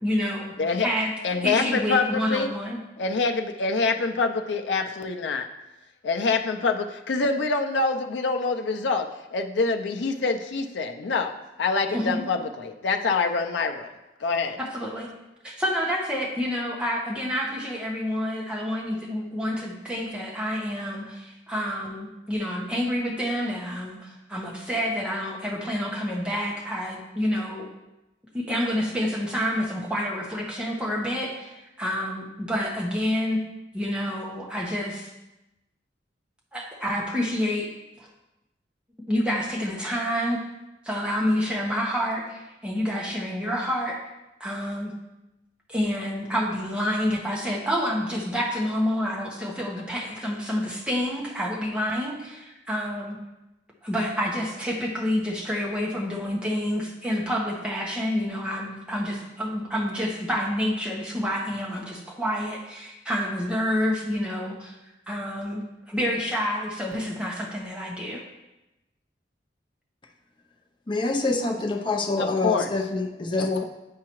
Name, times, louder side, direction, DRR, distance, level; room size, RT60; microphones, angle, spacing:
voice 1, 0.0-0.5 0.8-1.1 1.4-2.8 11.9-12.2 14.6-15.1 15.4-27.7 28.3-33.4 33.7-35.1 36.5-37.7 38.0-38.1 39.1-40.4 40.8-44.0 44.4-44.9 45.7-53.2 53.8-64.8 65.1-68.2, equal, 5° right, -3 dB, 1.0 m, -28 dB
voice 2, 1.2-2.5 3.0-5.5 6.0-11.3 11.6-13.9 14.2-14.6 72.2-72.7 73.4-73.6, left 4 dB, 75° left, 4 dB, 0.5 m, -25 dB
voice 3, 70.9-73.6, left 2 dB, 25° left, 2 dB, 0.6 m, -26 dB
8.5 x 4.7 x 3.0 m, 0.97 s
head